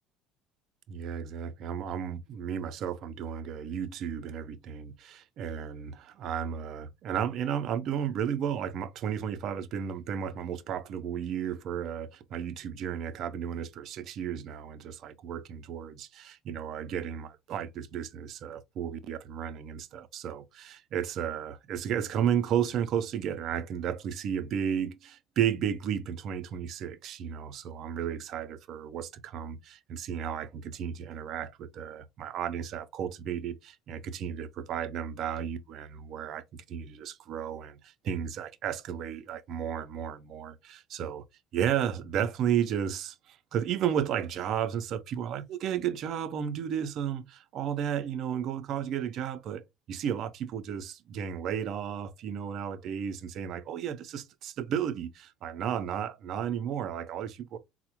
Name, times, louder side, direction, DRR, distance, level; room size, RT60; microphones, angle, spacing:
voice 1, 0.9-41.2 41.5-57.6, right 9 dB, 40° right, 0.4 m, -33 dB
4.5 x 2.0 x 2.9 m
cardioid pair, 180°, 0 cm